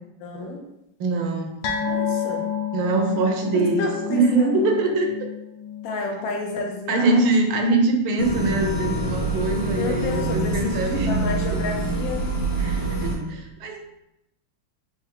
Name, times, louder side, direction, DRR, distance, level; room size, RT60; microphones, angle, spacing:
voice 1, 0.2-0.7 1.8-2.5 3.1-4.6 5.8-7.2 9.8-12.3, left 3 dB, 70° left, 1 dB, 1.2 m, -31 dB
voice 2, 1.0-1.6 2.7-5.1 6.9-11.1 12.6-13.8, right 3 dB, 75° right, 3 dB, 1.4 m, -23 dB
sound 1, 1.6-8.4 8.7-8.9 9.3-9.4, left 7 dB, 90° left, 1.6 m, -31 dB
sound 2, 8.2-13.2, right 2 dB, 50° left, 0.9 m, -25 dB
4.4 x 2.9 x 3.7 m, 0.85 s
omnidirectional pair, 2.4 m